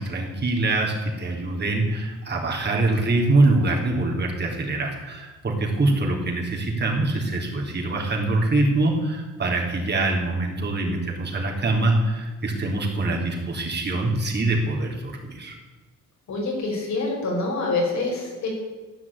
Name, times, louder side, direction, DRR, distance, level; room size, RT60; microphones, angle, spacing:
voice 1, 0.0-15.5, right 2 dB, 35° right, -1 dB, 3.7 m, -24 dB
voice 2, 16.3-18.5, left 3 dB, 65° left, -1 dB, 5.1 m, -26 dB
14.0 x 6.2 x 9.9 m, 1.3 s
cardioid pair, 90°, 30 cm